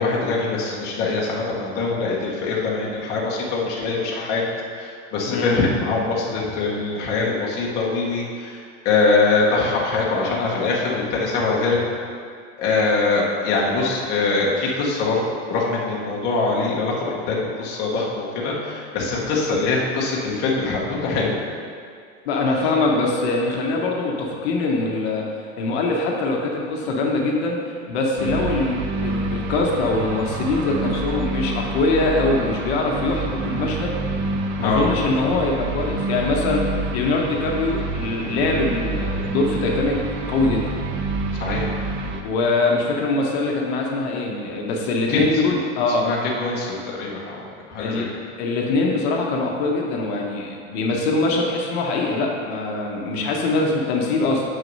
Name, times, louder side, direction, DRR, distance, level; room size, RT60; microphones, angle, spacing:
voice 1, 0.0-4.4 4.7-8.6 8.8-11.8 12.6-15.2 15.5-21.4 34.6-34.9 41.4-41.7 45.1-45.2 46.0-47.4 47.7-48.0, left 3 dB, 25° left, -4 dB, 1.1 m, -23 dB
voice 2, 5.3-5.6 22.2-25.2 25.6-34.0 34.6-40.0 40.3-40.7 42.2-46.1 47.8-48.1 48.4-54.4, left 3 dB, 55° left, 0 dB, 1.1 m, -23 dB
sound 1, 28.2-42.2, right 3 dB, 30° right, 0.4 m, -28 dB
6.4 x 6.3 x 5.4 m, 2.2 s
supercardioid pair, 170°, 38 cm